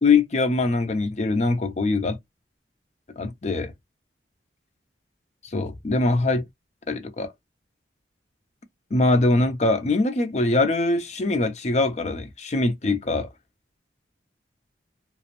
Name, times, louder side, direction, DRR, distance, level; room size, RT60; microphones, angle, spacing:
voice 1, 0.0-2.2 3.2-3.7 5.5-6.5 6.9-7.3 8.9-13.3, left 3 dB, 40° left, 0.5 m, -22 dB
2.8 x 2.0 x 2.5 m
head